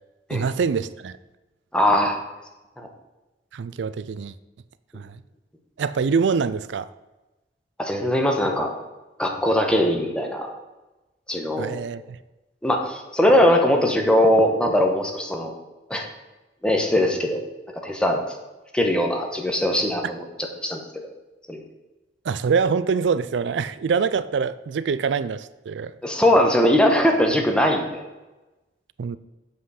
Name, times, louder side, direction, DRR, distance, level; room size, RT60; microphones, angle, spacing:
voice 1, 0.3-1.2 3.5-4.3 4.9-5.2 5.8-6.9 11.6-12.2 22.2-25.9 29.0-29.2, right 5 dB, 90° right, 0.4 m, -24 dB
voice 2, 1.7-2.2 2.8-2.9 7.8-8.7 9.2-10.5 11.3-11.8 12.6-15.6 15.9-16.1 16.6-17.5 17.8-18.2 18.7-20.8 21.5-21.6 26.0-28.0, left 1 dB, 5° left, 1.1 m, -20 dB
7.6 x 5.7 x 6.4 m
head